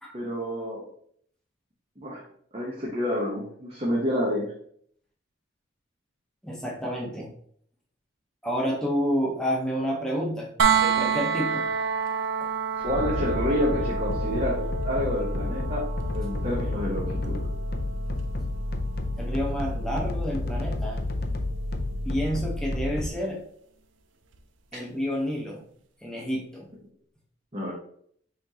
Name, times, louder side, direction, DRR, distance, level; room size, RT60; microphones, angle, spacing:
voice 1, 0.1-0.9 2.0-2.2 2.5-4.5 12.8-15.8 16.1-17.5 27.5-27.7, equal, 30° right, -5 dB, 0.9 m, -28 dB
voice 2, 6.4-7.3 8.4-10.5 10.8-11.7 19.2-21.0 22.0-23.4 24.7-25.6 26.0-26.7, equal, 5° left, -3 dB, 0.9 m, -29 dB
sound 1, 10.6-22.4 24.3-24.4, right 6 dB, 80° right, 0.5 m, -31 dB
sound 2, 12.9-23.1, left 2 dB, 50° left, 0.5 m, -30 dB
5.8 x 3.1 x 2.8 m, 0.63 s
head